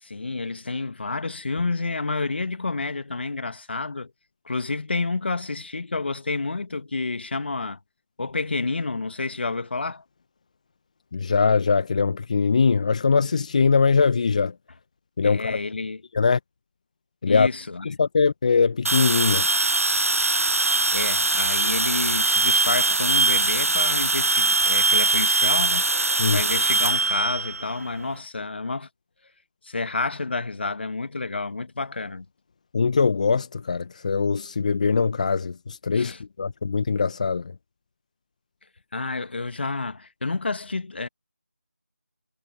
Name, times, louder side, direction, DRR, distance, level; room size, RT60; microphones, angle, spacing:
voice 1, 0.0-4.1 4.5-7.8 8.2-10.0 15.2-16.0 17.3-17.9 20.9-25.8 26.3-28.9 29.6-32.3 35.9-36.2 38.9-41.1, left 3 dB, 45° left, 1.9 m, -29 dB
voice 2, 11.1-14.5 15.2-15.6 16.1-16.4 17.2-17.5 17.8-19.5 26.2-26.4 32.7-37.5, left 5 dB, 30° left, 1.2 m, -22 dB
sound 1, 18.9-28.1, right 3 dB, 75° right, 0.9 m, -22 dB
figure-of-eight pair, 165°, 8 cm